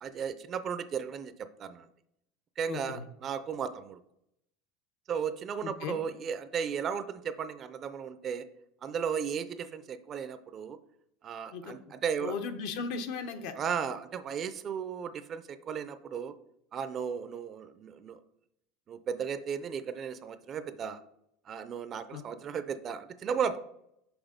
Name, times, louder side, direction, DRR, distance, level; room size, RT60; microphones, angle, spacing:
voice 1, 0.0-1.8 2.6-4.0 5.1-8.5 8.8-10.8 11.2-12.4 13.6-16.3 16.7-18.2 18.9-21.0 21.5-23.6, right 7 dB, 30° right, 12 dB, 0.4 m, -35 dB
voice 2, 2.7-3.0 5.6-6.0 11.5-11.7 12.2-13.5 22.1-22.2, left 5 dB, 65° left, 8 dB, 0.8 m, -36 dB
6.1 x 4.7 x 5.1 m, 0.79 s
supercardioid pair, 140°, 0 cm